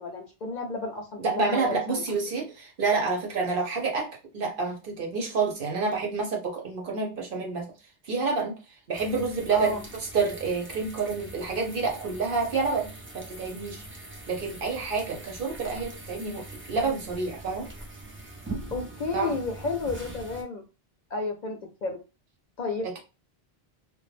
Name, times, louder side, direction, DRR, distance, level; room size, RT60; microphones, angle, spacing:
voice 1, 0.0-2.0 9.5-9.8 18.7-20.6 21.1-22.0 22.6-23.0, left 3 dB, 55° left, 3 dB, 0.6 m, -32 dB
voice 2, 1.2-7.7 8.0-8.6 8.9-13.8 14.3-17.7 19.1-19.4 22.8-23.0, right 4 dB, 60° right, 0 dB, 0.9 m, -28 dB
sound 1, 8.9-20.4, right 2 dB, 15° right, 0.4 m, -42 dB
2.2 x 2.0 x 3.1 m, 0.30 s
omnidirectional pair, 1.0 m